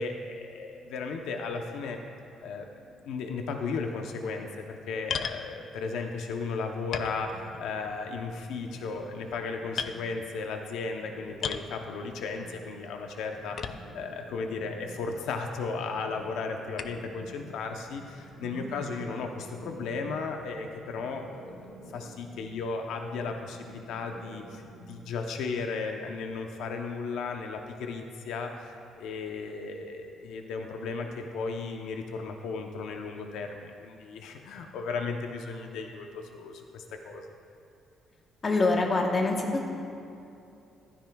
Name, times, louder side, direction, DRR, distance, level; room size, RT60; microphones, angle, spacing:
voice 1, 0.0-2.0 2.4-2.7 3.0-37.3, left 4 dB, 80° left, 4 dB, 0.7 m, -35 dB
sound 1, 5.1-5.5 6.3-6.4 6.9-7.8 8.1-8.5 9.1-9.4 9.8-10.0 11.4-11.7 13.6-14.1 14.8-14.9 16.8-17.1, left 7 dB, 40° left, 0.3 m, -35 dB
sound 2, 6.9-25.2, right 1 dB, 55° right, 1.7 m, -50 dB
voice 2, 38.4-39.7, left 3 dB, 25° left, 1 dB, 1.1 m, -25 dB
15.0 x 12.5 x 2.3 m, 2.7 s
cardioid pair, 180°, 0 cm